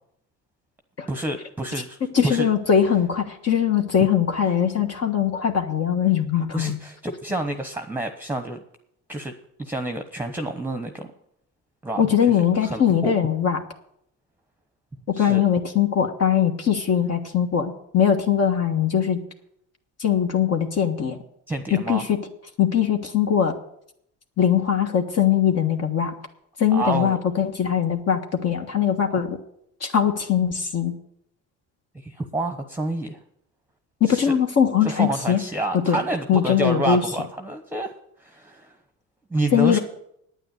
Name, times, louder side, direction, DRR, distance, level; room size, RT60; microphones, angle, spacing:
voice 1, 1.1-2.0 2.2-2.5 6.5-8.6 9.1-9.3 9.6-11.1 11.8-12.1 12.6-13.1 15.1-15.4 21.5-22.0 26.7-27.2 32.0-33.2 34.1-34.3 34.8-37.9 38.2-38.7 39.3-39.8, right 2 dB, 5° right, 6 dB, 1.0 m, -28 dB
voice 2, 2.1-6.8 12.0-13.6 15.1-19.2 20.0-21.2 21.7-22.2 22.6-23.6 24.4-26.1 26.6-29.4 29.8-30.9 34.0-35.4 35.9-36.0 36.3-37.0 39.5-39.8, left 8 dB, 45° left, 3 dB, 1.4 m, -21 dB
9.3 x 9.1 x 9.1 m, 0.74 s
supercardioid pair, 90°, 35 cm